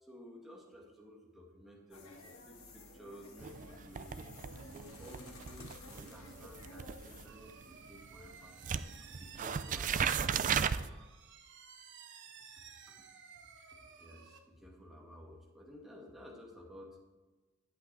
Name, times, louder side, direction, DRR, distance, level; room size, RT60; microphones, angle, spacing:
voice 1, 0.0-4.2 4.6-8.5 9.0-10.9 13.6-17.0, left 1 dB, ahead, -3 dB, 2.3 m, -54 dB
sound 1, 1.9-7.3, left 2 dB, 85° left, 1.8 m, -53 dB
sound 2, 3.4-8.3 8.6-10.9, right 7 dB, 40° right, 0.4 m, -36 dB
sound 3, 7.3-14.4, right 6 dB, 60° right, 1.2 m, -55 dB
11.5 x 8.1 x 4.7 m, 1.2 s
head